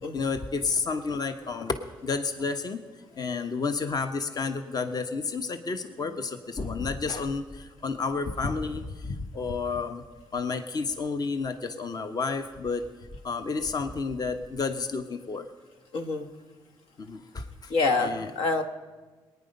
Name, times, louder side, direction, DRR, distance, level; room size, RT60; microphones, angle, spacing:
voice 1, 0.1-2.8 3.1-10.0 10.3-12.8 13.2-15.4 17.0-17.7 18.0-18.3, left 4 dB, 45° left, 8 dB, 1.0 m, -31 dB
voice 2, 15.9-16.3 17.7-18.6, left 3 dB, 80° left, 7 dB, 1.2 m, -26 dB
20.5 x 9.6 x 5.4 m, 1.4 s
supercardioid pair, 65°, 9 cm